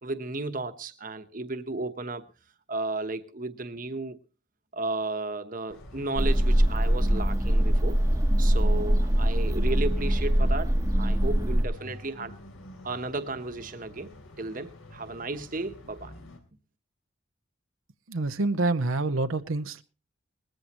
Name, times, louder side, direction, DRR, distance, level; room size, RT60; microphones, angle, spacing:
voice 1, 0.0-2.2 2.7-4.2 4.7-8.0 8.4-12.4 12.8-14.1 14.4-16.1, right 2 dB, 40° right, 1.1 m, -34 dB
sound 1, 5.7-16.4, left 1 dB, 90° left, 3.6 m, -47 dB
sound 2, 6.2-11.6, equal, 15° right, 1.0 m, -23 dB
voice 2, 18.1-19.8, right 2 dB, 85° right, 0.8 m, -27 dB
20.0 x 14.0 x 3.0 m
head